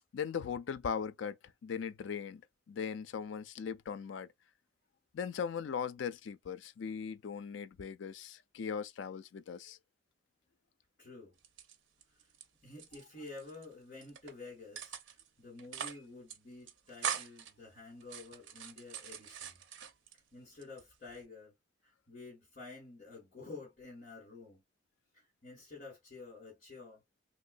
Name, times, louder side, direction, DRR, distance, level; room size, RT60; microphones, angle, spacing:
voice 1, 0.1-1.4 1.6-2.4 2.7-4.3 5.1-9.8, left 6 dB, 85° left, 0.4 m, -39 dB
voice 2, 11.0-11.4 12.2-12.3 12.6-14.9 15.4-19.6 20.3-21.5 21.8-24.6 25.1-27.0, left 3 dB, 45° left, 1.8 m, -50 dB
sound 1, 11.4-12.4 12.7-13.7 14.0-14.3 14.8-15.3 15.6-16.0 16.3-16.4 16.7-17.5 18.0-20.2 20.6-21.2, right 8 dB, 85° right, 0.6 m, -42 dB
3.3 x 3.0 x 2.5 m
head